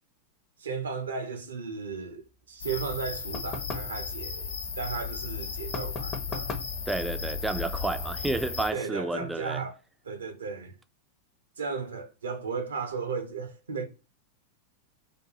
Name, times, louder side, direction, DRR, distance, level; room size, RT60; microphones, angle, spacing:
voice 1, 0.6-2.2 2.5-6.6 8.7-9.8 10.0-10.8 11.6-13.8, right 5 dB, 80° right, 0.5 m, -35 dB
sound 1, 2.6-8.7, left 5 dB, 75° left, 0.5 m, -35 dB
sound 2, 3.3-4.0 5.7-6.8, left 4 dB, 30° left, 0.7 m, -37 dB
voice 2, 6.9-9.6, right 2 dB, 5° right, 0.3 m, -31 dB
2.5 x 2.3 x 2.8 m
figure-of-eight pair, 95°, 0 cm